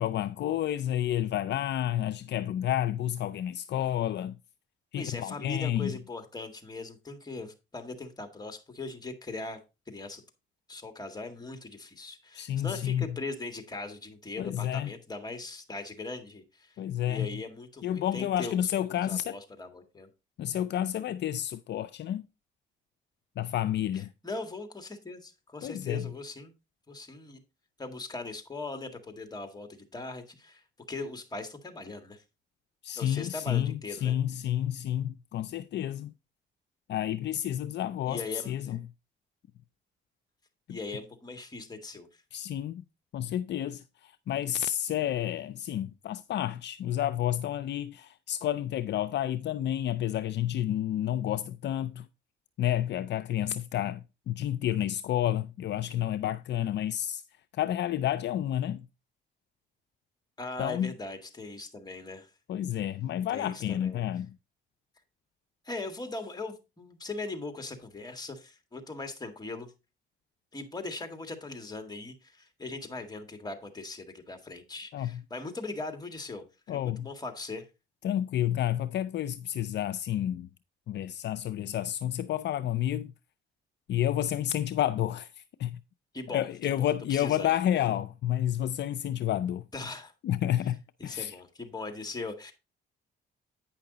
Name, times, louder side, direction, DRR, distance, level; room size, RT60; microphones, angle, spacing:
voice 1, 0.0-4.4 4.9-5.9 12.3-13.1 14.4-14.9 16.8-17.3 17.8-19.3 20.4-22.3 23.4-24.1 25.6-26.1 32.8-33.7 34.0-36.1 36.9-38.8 40.7-40.8 42.3-42.8 43.1-52.1 52.6-57.2 57.5-58.9 60.6-60.9 62.5-64.3 74.9-75.2 76.7-77.1 78.0-80.5 80.9-83.1 83.9-85.3 85.6-85.8 86.3-89.6 90.2-90.8 91.0-91.3, left 11 dB, 60° left, 0.4 m, -30 dB
voice 2, 5.0-9.6 9.9-10.2 10.7-16.8 17.1-20.1 23.9-26.5 26.9-27.4 27.8-32.2 33.0-34.2 38.1-38.8 40.7-42.2 60.4-62.3 63.3-64.0 65.6-69.7 70.5-77.6 86.1-87.5 89.7-90.1 91.0-92.5, left 3 dB, 20° left, 1.8 m, -40 dB
9.2 x 5.8 x 3.9 m
cardioid pair, 90°, 20 cm